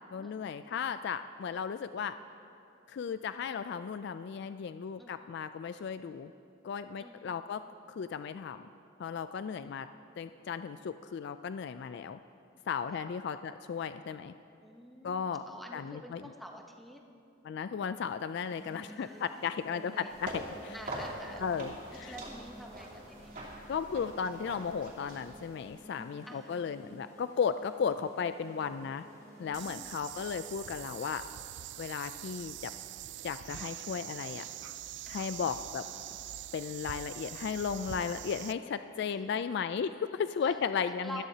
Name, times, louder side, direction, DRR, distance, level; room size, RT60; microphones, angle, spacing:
voice 1, 0.0-2.2 2.9-6.3 6.6-8.7 9.0-9.9 10.2-12.2 12.7-14.3 15.0-15.4 15.7-16.2 17.4-20.8 21.4-22.1 23.7-29.0 29.4-31.2 31.8-32.7 33.2-34.4 35.1-35.8 36.5-41.2, left 6 dB, 60° left, 11 dB, 0.3 m, -35 dB
voice 2, 7.0-7.3 9.5-9.7 12.9-13.1 14.6-17.0 18.9-19.4 19.7-20.1 20.7-21.4 21.9-23.3 26.3-26.6 29.6-29.9 33.5-33.7 35.0-35.3 39.1-39.4 40.4-40.6 40.9-41.2, equal, ahead, 1 dB, 0.9 m, -49 dB
sound 1, 18.4-30.0, right 1 dB, 15° left, 3.7 m, -54 dB
sound 2, 20.1-25.7, right 1 dB, 40° right, 2.8 m, -44 dB
sound 3, 29.5-38.5, right 13 dB, 60° right, 0.3 m, -44 dB
20.5 x 14.0 x 2.8 m, 2.6 s
head